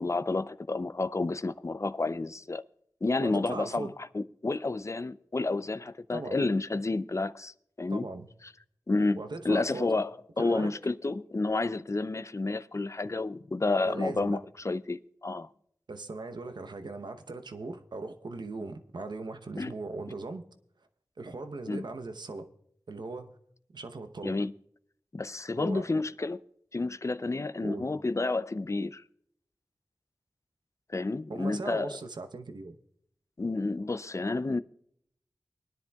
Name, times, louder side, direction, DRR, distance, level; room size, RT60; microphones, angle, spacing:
voice 1, 0.0-2.6 3.0-8.1 8.9-9.2 9.4-10.1 10.4-15.5 19.6-19.7 21.7-21.8 24.2-24.5 25.1-26.4 26.7-29.0 30.9-32.0 33.4-34.6, left 3 dB, 40° left, 0.5 m, -30 dB
voice 2, 3.2-3.9 6.1-6.4 7.9-8.3 9.1-9.9 10.4-10.7 13.9-14.4 15.9-20.5 21.2-22.5 22.9-23.3 23.7-24.4 25.6-25.9 27.6-27.9 31.3-32.8, right 3 dB, 85° right, 0.9 m, -39 dB
22.5 x 10.5 x 2.3 m
wide cardioid pair, 45°, 7 cm